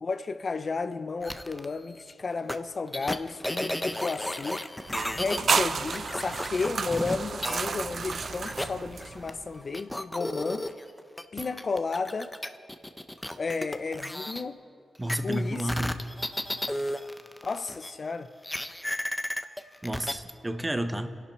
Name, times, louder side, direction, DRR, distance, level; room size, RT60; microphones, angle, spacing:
voice 1, 0.0-4.6 5.1-10.6 11.3-12.3 13.4-14.6 15.2-16.0 17.4-18.3, left 4 dB, 50° left, 0.6 m, -33 dB
sound 1, 1.2-1.7 2.5-2.6 2.9-5.4 5.9-7.9 8.2-9.3 9.7-14.4 15.1-17.9 18.4-20.1, left 1 dB, 10° left, 0.8 m, -33 dB
sound 2, 4.9-9.5, right 5 dB, 60° right, 0.6 m, -31 dB
voice 2, 15.0-16.0 19.8-21.1, right 1 dB, 20° right, 1.2 m, -31 dB
26.5 x 11.0 x 4.5 m
cardioid pair, 65°, 0 cm